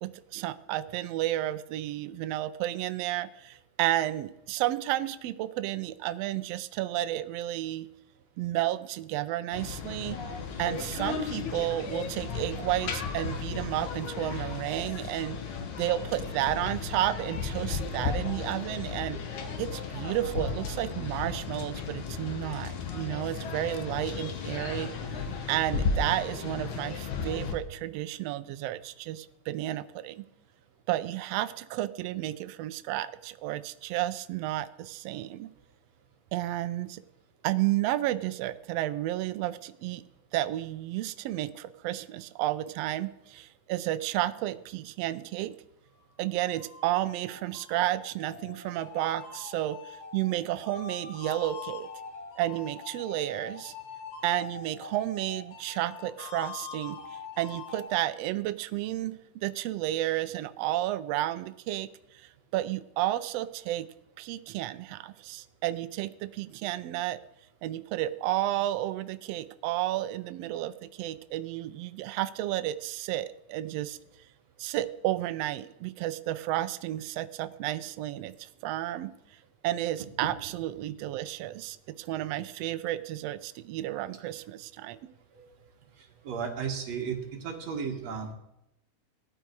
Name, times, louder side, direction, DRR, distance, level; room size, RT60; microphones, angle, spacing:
voice 1, 0.0-7.9 8.4-10.2 10.6-15.4 15.8-19.2 19.6-24.9 25.5-30.2 30.9-35.5 36.3-37.0 37.4-40.0 40.3-45.6 46.2-51.9 52.4-53.7 54.2-61.9 62.1-63.9 64.2-67.2 67.6-74.0 74.6-79.1 79.6-85.0, right 14 dB, 85° right, 12 dB, 1.4 m, -32 dB
sound 1, 9.5-27.5, left 5 dB, 70° left, 2.8 m, -35 dB
sound 2, 46.1-57.9, left 6 dB, 85° left, 3.9 m, -44 dB
voice 2, 86.2-88.3, right 6 dB, 60° right, 3 dB, 2.8 m, -34 dB
18.5 x 12.5 x 4.7 m, 0.86 s
omnidirectional pair, 3.6 m